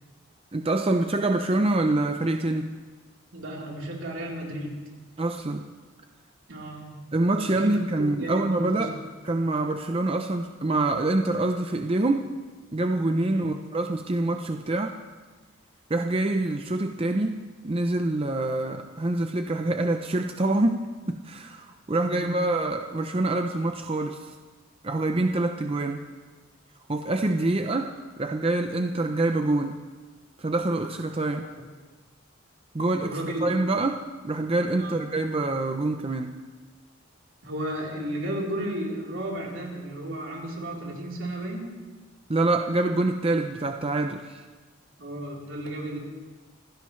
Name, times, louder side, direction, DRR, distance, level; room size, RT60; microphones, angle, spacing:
voice 1, 0.5-2.8 5.2-5.7 7.1-8.9 9.2-12.3 12.7-15.0 15.9-24.4 24.8-26.1 26.9-29.8 30.4-31.4 32.7-36.4 42.3-44.4, right 2 dB, 30° right, 5 dB, 0.6 m, -26 dB
voice 2, 3.3-4.8 6.5-6.9 7.4-7.7 8.0-8.9 13.3-13.4 22.0-22.3 31.3-31.4 33.0-33.4 34.8-34.9 37.4-41.7 45.0-46.0, right 1 dB, 70° right, -2 dB, 3.8 m, -33 dB
26.0 x 16.0 x 3.2 m, 1.3 s
head